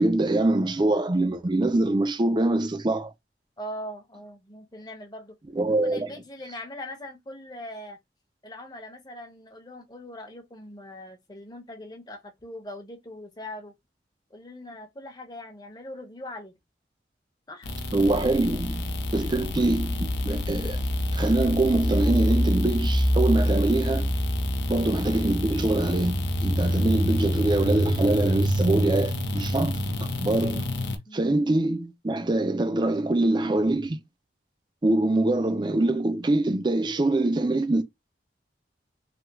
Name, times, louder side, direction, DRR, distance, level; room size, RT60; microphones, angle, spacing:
voice 1, 0.0-3.1 5.6-6.1 17.9-20.8 21.1-24.1 24.7-29.8 30.2-30.7 31.1-34.0 34.8-37.8, right 2 dB, 25° right, 0.4 m, -24 dB
voice 2, 3.6-5.4 5.7-8.0 8.4-13.7 14.3-16.6 17.5-17.7 24.5-24.8 31.1-31.4, left 1 dB, 25° left, 0.8 m, -41 dB
sound 1, 17.6-31.0, equal, 80° left, 0.7 m, -26 dB
3.3 x 2.3 x 2.9 m
head